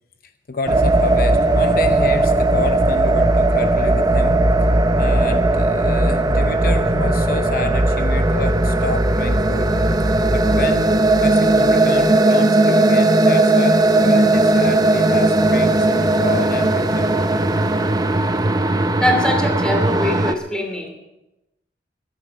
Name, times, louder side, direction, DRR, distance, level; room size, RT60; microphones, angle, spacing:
voice 1, 0.5-4.4 5.0-9.7 10.3-17.1, left 3 dB, 50° left, 8 dB, 0.7 m, -29 dB
sound 1, 0.7-20.3, right 2 dB, 20° right, 0.7 m, -17 dB
voice 2, 19.0-20.9, left 1 dB, 5° left, 2 dB, 2.7 m, -22 dB
15.5 x 12.5 x 5.3 m, 0.96 s
head